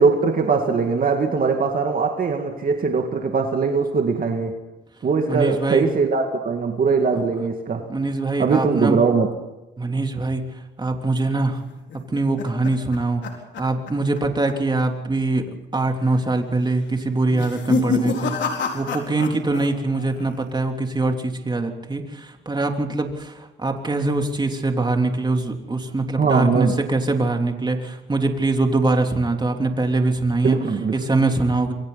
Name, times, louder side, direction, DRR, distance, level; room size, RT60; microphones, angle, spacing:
voice 1, 0.0-4.6 5.0-7.9 8.4-9.3 26.2-26.8 30.4-31.0, right 5 dB, 45° right, 2.2 m, -21 dB
voice 2, 5.3-5.9 7.9-9.0 9.8-11.6 11.9-13.2 13.6-30.6 30.9-31.7, right 2 dB, 20° right, 3.3 m, -23 dB
sound 1, 11.7-14.2 14.5-14.8 15.1-15.2 16.0-16.4 17.2-19.7 19.9-20.5, left 4 dB, 65° left, 4.5 m, -27 dB
27.5 x 23.0 x 4.1 m
cardioid pair, 90°, 20 cm